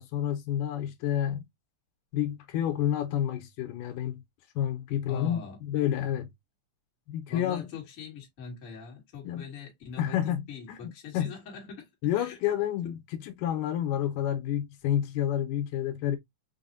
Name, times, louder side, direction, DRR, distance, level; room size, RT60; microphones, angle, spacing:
voice 1, 0.0-1.4 2.1-4.2 4.6-6.3 7.1-7.7 9.2-9.4 10.0-11.4 12.0-16.2, left 10 dB, 85° left, 2.2 m, -29 dB
voice 2, 5.1-5.6 7.3-10.2 10.5-11.9 12.1-12.4 12.8-12.9, left 5 dB, 45° left, 1.0 m, -42 dB
5.6 x 2.1 x 2.5 m
omnidirectional pair, 3.7 m